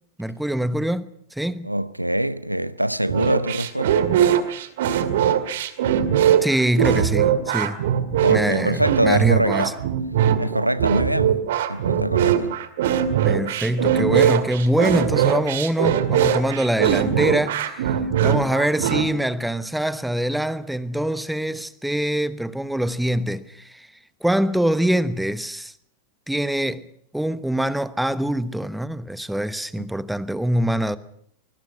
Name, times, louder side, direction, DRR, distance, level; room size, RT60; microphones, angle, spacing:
voice 1, 0.2-1.7 6.4-7.8 8.3-9.7 13.2-18.0 18.2-23.9 24.2-25.7 26.3-26.9 27.1-31.0, right 1 dB, 5° right, 1.1 m, -24 dB
voice 2, 1.6-4.1 8.2-9.7 10.4-11.4 11.7-12.5, right 1 dB, 90° right, 0.8 m, -23 dB
sound 1, 3.1-19.1, right 9 dB, 55° right, 2.2 m, -21 dB
24.5 x 21.0 x 5.7 m
figure-of-eight pair, 90°, 0 cm